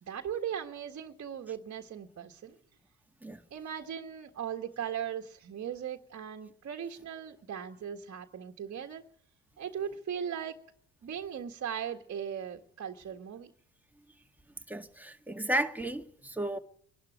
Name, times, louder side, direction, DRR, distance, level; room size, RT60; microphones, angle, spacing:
voice 1, 0.0-2.6 3.5-9.0 9.6-10.6 11.0-13.5, right 8 dB, 45° right, 1.6 m, -38 dB
voice 2, 14.7-16.6, right 1 dB, 5° right, 1.9 m, -33 dB
23.0 x 12.0 x 9.4 m
supercardioid pair, 65°, 33 cm